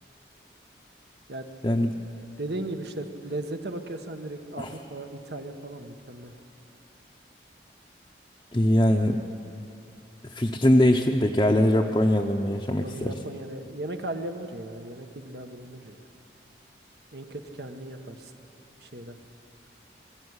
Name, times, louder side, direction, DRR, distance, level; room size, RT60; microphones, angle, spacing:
voice 1, 1.6-1.9 4.6-4.7 8.5-9.2 10.3-13.1, left 1 dB, 20° left, 0 dB, 0.7 m, -22 dB
voice 2, 2.4-6.3 12.7-16.0 17.1-18.3 18.8-19.2, right 1 dB, 65° right, 6 dB, 1.3 m, -36 dB
21.0 x 14.5 x 9.8 m, 2.7 s
head